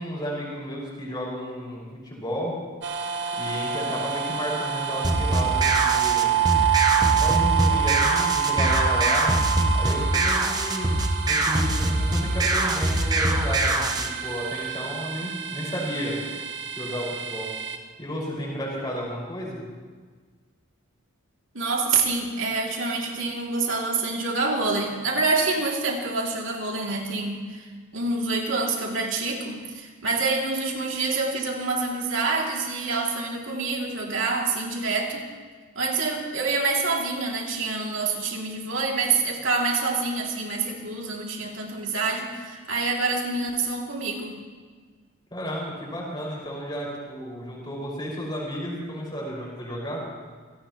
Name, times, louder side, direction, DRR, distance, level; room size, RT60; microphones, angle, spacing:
voice 1, 0.0-2.6 3.3-6.4 7.2-9.3 9.7-11.0 11.2-16.2 16.8-17.5 18.0-19.6 45.3-50.0, equal, 20° left, -4 dB, 5.7 m, -32 dB
sound 1, 2.8-17.8, right 8 dB, 55° right, 1.3 m, -27 dB
sound 2, 5.0-14.1, right 2 dB, 20° right, 1.0 m, -23 dB
voice 2, 21.5-27.7 27.9-35.3 35.7-44.4, right 3 dB, 75° right, -1 dB, 2.7 m, -26 dB
26.5 x 17.5 x 3.1 m, 1.5 s
head